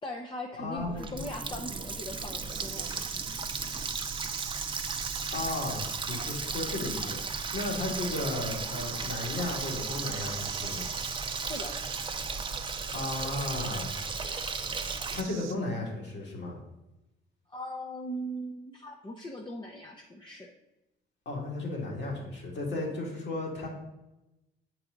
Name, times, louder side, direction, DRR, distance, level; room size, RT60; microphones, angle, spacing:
voice 1, 0.0-3.1 11.5-11.7 17.5-20.5, equal, 25° left, 1 dB, 0.7 m, -40 dB
voice 2, 0.6-1.2 5.3-10.9 12.9-13.9 15.1-16.6 21.3-23.7, left 2 dB, 60° left, -1 dB, 2.2 m, -34 dB
Water tap faucet, 0.8-15.2, right 4 dB, 25° right, 0.6 m, -35 dB
sound 1, 2.5-15.6, right 10 dB, 85° right, 0.6 m, -43 dB
7.5 x 4.7 x 3.8 m, 0.96 s
cardioid pair, 90°, 20 cm